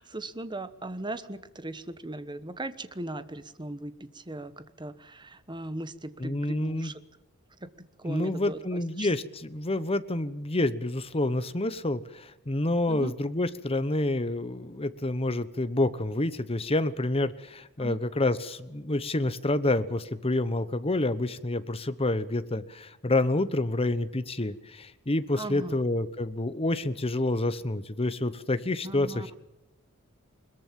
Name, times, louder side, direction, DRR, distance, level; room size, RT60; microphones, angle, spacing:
voice 1, 0.0-7.0 7.6-7.7 8.0-9.1 12.9-13.1 17.8-18.0 25.3-25.8 28.8-29.3, right 2 dB, 20° right, 12 dB, 1.2 m, -38 dB
voice 2, 6.2-6.9 8.0-29.1, left 2 dB, 25° left, 13 dB, 1.1 m, -28 dB
22.0 x 21.5 x 7.6 m, 0.95 s
head